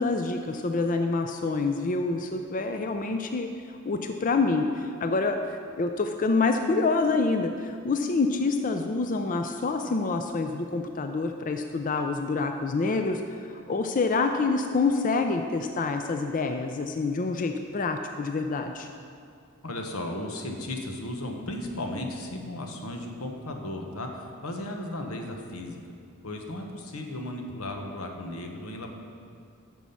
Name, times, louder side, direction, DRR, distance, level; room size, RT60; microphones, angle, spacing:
voice 1, 0.0-18.9, left 3 dB, 40° left, 5 dB, 0.4 m, -27 dB
voice 2, 19.6-25.8 26.2-28.9, left 1 dB, 90° left, 3 dB, 1.2 m, -35 dB
9.4 x 6.2 x 7.0 m, 2.3 s
head